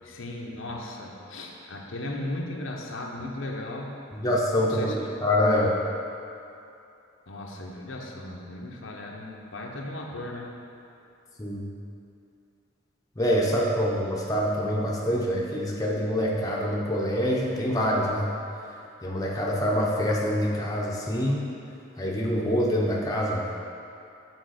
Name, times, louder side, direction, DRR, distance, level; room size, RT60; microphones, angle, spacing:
voice 1, 0.0-3.9 4.6-5.0 7.3-10.5, left 1 dB, 70° left, 0 dB, 0.8 m, -36 dB
voice 2, 4.1-5.7 11.4-11.6 13.2-18.3 19.0-21.5 22.0-23.6, equal, 15° left, -3 dB, 0.7 m, -25 dB
6.3 x 4.5 x 6.4 m, 2.7 s
head